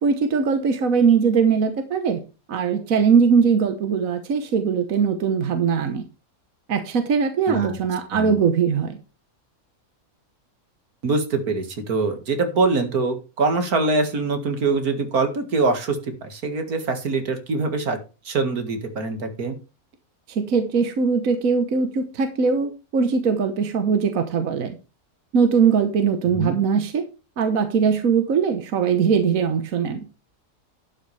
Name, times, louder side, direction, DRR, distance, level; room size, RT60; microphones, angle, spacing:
voice 1, 0.0-2.2 2.5-6.0 6.7-9.0 20.3-24.8 25.3-27.0 27.4-30.0, right 6 dB, 70° right, 7 dB, 1.6 m, -21 dB
voice 2, 7.5-7.8 8.1-8.4 11.0-18.0 18.2-19.6 26.3-26.6, right 3 dB, 85° right, 7 dB, 2.4 m, -24 dB
11.5 x 8.1 x 3.4 m, 0.31 s
omnidirectional pair, 1.5 m